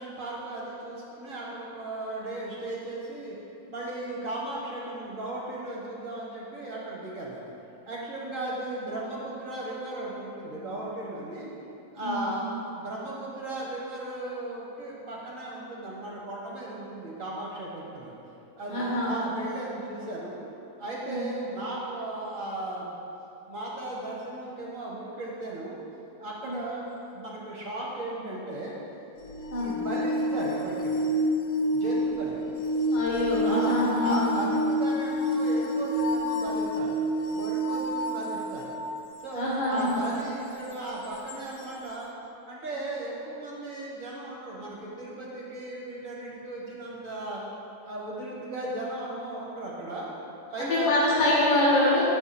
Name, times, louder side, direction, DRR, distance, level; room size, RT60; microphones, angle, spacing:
voice 1, 0.0-3.4 3.7-7.5 7.9-11.5 11.9-18.1 18.6-20.4 20.8-23.0 23.5-25.8 26.2-28.8 29.6-31.0 31.7-32.4 33.4-37.0 37.3-38.7 39.2-42.1 42.5-47.4 47.8-50.1 50.5-51.0, right 2 dB, 45° right, -4 dB, 1.7 m, -36 dB
voice 2, 12.0-12.3 18.7-19.1 21.0-21.3 26.4-26.6 29.5-29.7 32.9-34.3 39.4-40.0 50.6-52.0, left 1 dB, 65° left, -6 dB, 2.3 m, -25 dB
sound 1, 29.2-39.0 41.3-41.4, equal, 90° left, 1.5 m, -28 dB
9.3 x 6.4 x 4.3 m, 2.8 s
omnidirectional pair, 2.2 m